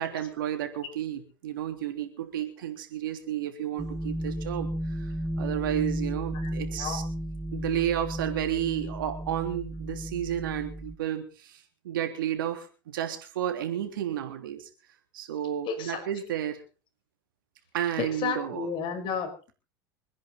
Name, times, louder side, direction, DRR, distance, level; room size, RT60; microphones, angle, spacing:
voice 1, 0.0-4.7 4.9-5.1 5.4-7.0 7.5-14.7 15.1-16.6 17.7-18.7, right 11 dB, 85° right, 6 dB, 3.4 m, -32 dB
sound 1, 3.8-11.0, right 1 dB, 5° right, 1.6 m, -34 dB
voice 2, 15.7-16.1 18.0-19.5, left 6 dB, 50° left, 6 dB, 5.5 m, -32 dB
25.5 x 10.5 x 4.1 m, 0.36 s
hypercardioid pair, 95°, 11 cm